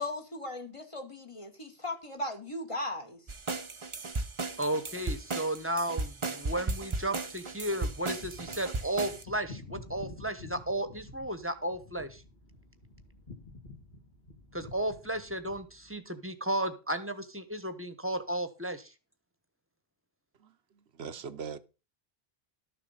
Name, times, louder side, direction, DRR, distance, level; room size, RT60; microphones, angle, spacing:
voice 1, 0.0-3.2, left 1 dB, 30° left, 1.7 m, -37 dB
sound 1, 3.3-9.2, right 3 dB, 30° right, 0.9 m, -35 dB
voice 2, 4.6-12.2 14.5-18.9, right 1 dB, 15° right, 1.2 m, -34 dB
sound 2, 7.1-16.0, left 3 dB, 45° left, 2.2 m, -50 dB
voice 3, 20.4-21.6, right 6 dB, 80° right, 1.1 m, -42 dB
13.0 x 6.8 x 5.6 m
omnidirectional pair, 1.1 m